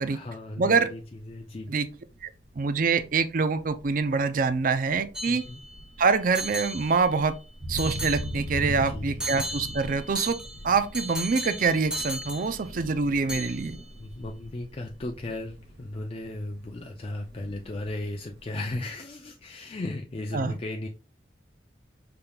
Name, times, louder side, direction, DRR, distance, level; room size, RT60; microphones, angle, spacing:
voice 1, 0.1-1.7 5.3-5.6 8.7-9.3 14.0-20.9, left 2 dB, 35° left, 0.5 m, -36 dB
voice 2, 0.6-0.9 1.7-1.9 2.2-2.3 2.6-5.4 6.0-7.4 7.7-10.4 10.6-13.8 20.3-20.6, right 4 dB, 50° right, 0.5 m, -25 dB
sound 1, 0.6-18.5, right 1 dB, 85° right, 1.8 m, -41 dB
sound 2, 5.1-5.9 6.3-7.4 7.8-8.7 9.2-13.0 13.3-13.9, right 1 dB, 5° right, 1.1 m, -36 dB
5.8 x 3.5 x 2.3 m
head